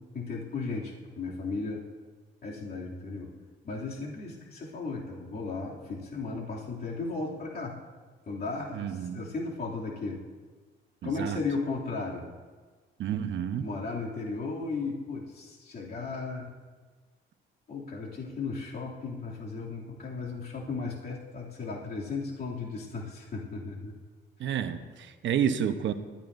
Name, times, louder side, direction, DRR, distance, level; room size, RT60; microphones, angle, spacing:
voice 1, 0.0-1.8 2.4-3.3 3.6-7.8 8.3-10.2 11.0-12.2 13.6-16.5 17.7-23.9, left 3 dB, 50° left, -4 dB, 2.8 m, -35 dB
voice 2, 8.7-9.2 11.0-11.4 13.0-13.7 24.4-25.9, right 9 dB, 70° right, 8 dB, 1.0 m, -30 dB
20.5 x 13.0 x 2.7 m, 1.4 s
cardioid pair, 90°, 20 cm